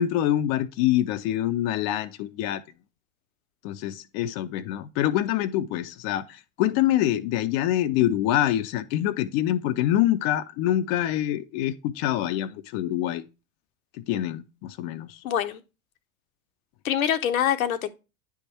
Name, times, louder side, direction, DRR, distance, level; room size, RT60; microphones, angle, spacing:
voice 1, 0.0-2.6 3.6-13.2 14.0-15.2, left 12 dB, 45° left, 0.5 m, -25 dB
voice 2, 15.2-15.6 16.8-17.9, left 10 dB, 70° left, 0.8 m, -24 dB
9.6 x 3.5 x 4.3 m
figure-of-eight pair, 80°, 43 cm